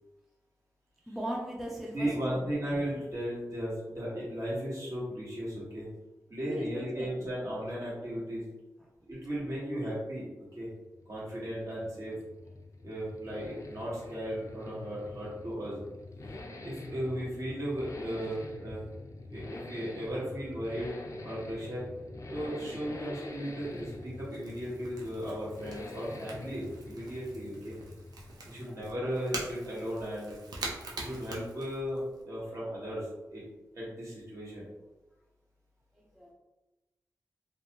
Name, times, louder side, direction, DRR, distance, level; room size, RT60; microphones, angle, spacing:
voice 1, 1.1-2.5 6.4-7.3 18.2-18.3 28.4-28.8 35.9-36.3, right 1 dB, ahead, -3 dB, 0.5 m, -40 dB
voice 2, 1.9-5.9 6.3-8.4 9.0-10.3 10.5-10.7 11.1-12.1 12.8-15.8 16.6-18.8 19.3-20.9 21.2-21.9 22.3-27.7 28.5-30.3 31.0-33.4 33.7-34.7, equal, 50° right, -7 dB, 1.3 m, -36 dB
sound 1, 10.7-28.7, left 2 dB, 55° left, 0.5 m, -45 dB
Crackle / Crack, 22.8-32.2, right 2 dB, 85° right, 0.5 m, -45 dB
2.5 x 2.2 x 2.8 m, 1.0 s
cardioid pair, 55°, 7 cm